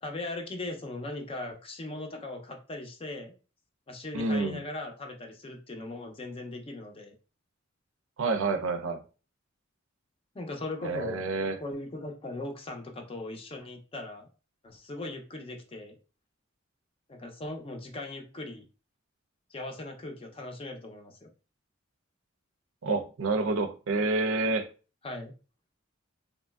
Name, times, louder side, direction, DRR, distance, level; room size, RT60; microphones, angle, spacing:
voice 1, 0.0-3.3 3.9-7.1 10.3-11.2 11.6-14.3 14.6-16.0 17.1-18.6 19.5-21.3 25.0-25.3, left 2 dB, 30° left, 0.5 m, -39 dB
voice 2, 4.1-4.6 8.2-9.0 10.8-11.6 22.8-24.7, right 3 dB, 75° right, 0.5 m, -28 dB
3.0 x 2.5 x 2.3 m
head